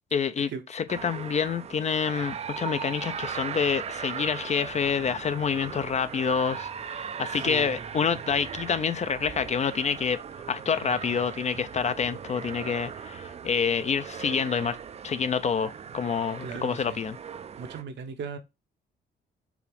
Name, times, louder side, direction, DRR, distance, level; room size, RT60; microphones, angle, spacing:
voice 1, 0.1-10.2 10.5-14.8 15.0-17.2, left 6 dB, 35° left, 0.4 m, -27 dB
sound 1, 0.9-17.8, right 7 dB, 30° right, 0.4 m, -38 dB
voice 2, 7.3-7.9 16.4-17.0 17.5-18.4, right 5 dB, 65° right, 0.8 m, -38 dB
4.7 x 2.4 x 3.4 m
cardioid pair, 90°, 20 cm